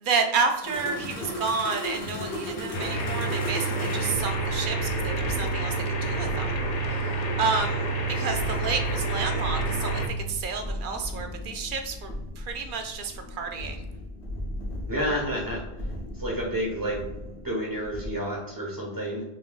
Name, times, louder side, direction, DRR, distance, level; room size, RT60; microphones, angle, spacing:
voice 1, 0.0-5.7 6.0-6.5 7.4-10.0 10.3-12.1 12.4-13.8, right 5 dB, 60° right, 5 dB, 0.6 m, -30 dB
sound 1, 0.6-18.1, left 1 dB, 85° left, 1.3 m, -37 dB
sound 2, 2.7-10.1, right 3 dB, 50° left, 0.5 m, -28 dB
voice 2, 14.9-15.6 16.2-17.0 17.4-19.2, equal, 20° right, -4 dB, 1.1 m, -29 dB
5.9 x 2.6 x 2.4 m, 0.99 s
omnidirectional pair, 1.1 m